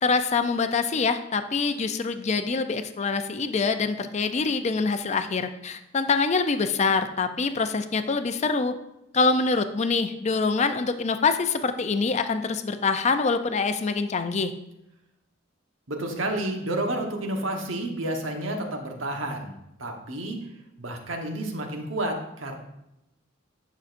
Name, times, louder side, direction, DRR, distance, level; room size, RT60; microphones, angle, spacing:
voice 1, 0.0-8.7 9.1-14.5, left 4 dB, 35° left, 9 dB, 0.5 m, -25 dB
voice 2, 15.9-20.4 20.8-22.6, right 1 dB, 75° right, 3 dB, 1.2 m, -30 dB
10.0 x 6.3 x 2.6 m, 0.87 s
head